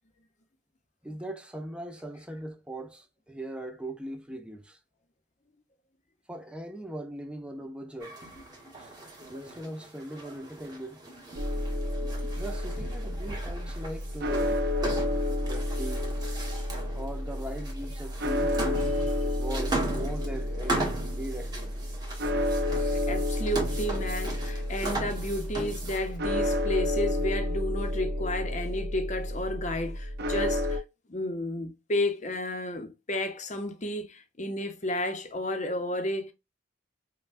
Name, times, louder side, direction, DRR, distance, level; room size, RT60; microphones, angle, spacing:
voice 1, 1.0-4.8 6.3-8.2 8.8-8.9 9.3-11.1 12.4-14.6 15.4-16.2 16.9-18.7 19.2-21.9, right 1 dB, 5° right, 0.5 m, -40 dB
sound 1, 8.0-26.2, right 2 dB, 20° right, 1.1 m, -38 dB
sound 2, 11.4-30.8, left 1 dB, 55° right, 0.7 m, -30 dB
voice 2, 22.8-30.8 31.1-36.3, left 1 dB, 40° left, 0.7 m, -32 dB
5.4 x 2.2 x 2.5 m
head